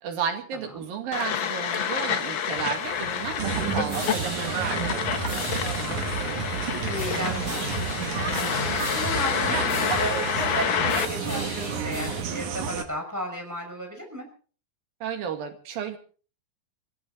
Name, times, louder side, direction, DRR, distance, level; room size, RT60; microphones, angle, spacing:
voice 1, 0.0-4.7 15.0-16.0, right 7 dB, 85° right, 5 dB, 3.9 m, -33 dB
sound 1, 1.1-11.1, left 8 dB, 75° left, 1.1 m, -29 dB
sound 2, 2.5-12.2, left 2 dB, 25° left, 8.0 m, -37 dB
sound 3, 3.4-12.9, right 7 dB, 65° right, 2.7 m, -30 dB
voice 2, 5.8-14.3, equal, 5° right, 2 dB, 5.2 m, -35 dB
24.0 x 15.0 x 4.0 m, 0.41 s
omnidirectional pair, 4.0 m